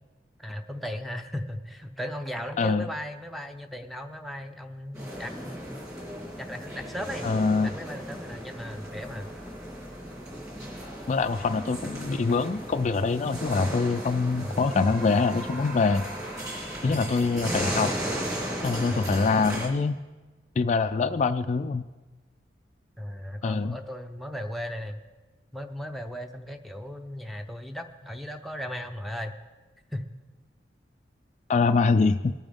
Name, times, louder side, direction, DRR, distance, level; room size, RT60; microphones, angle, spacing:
voice 1, 0.4-5.8 6.4-7.3 7.6-9.3 14.4-14.8 16.9-17.0 18.9-19.1 20.9-21.0 23.0-25.0 25.5-29.3 29.9-30.1, equal, ahead, 3 dB, 0.6 m, -37 dB
sound 1, 4.9-19.7, equal, 20° right, 2.8 m, -35 dB
voice 2, 7.2-7.7 11.1-16.1 16.8-17.9 18.6-20.0 20.6-21.8 23.4-23.8 31.5-32.3, left 4 dB, 40° left, 8 dB, 0.3 m, -24 dB
21.0 x 8.9 x 3.6 m, 1.3 s
head